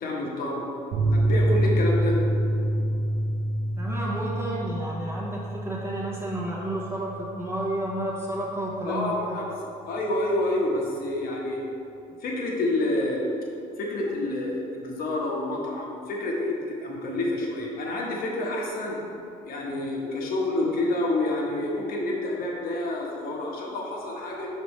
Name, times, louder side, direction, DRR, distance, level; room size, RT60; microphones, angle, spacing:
voice 1, 0.0-0.7 1.1-2.2 8.8-9.4 9.9-11.6 12.2-13.2 13.8-19.0 19.5-24.5, left 2 dB, 60° left, -2 dB, 1.2 m, -28 dB
sound 1, 0.9-8.0 8.3-8.4 8.7-8.8, right 1 dB, 80° right, 0.7 m, -27 dB
voice 2, 3.8-9.1, right 1 dB, 15° right, -5 dB, 0.8 m, -31 dB
5.8 x 5.4 x 3.2 m, 2.7 s
cardioid pair, 95°, 17 cm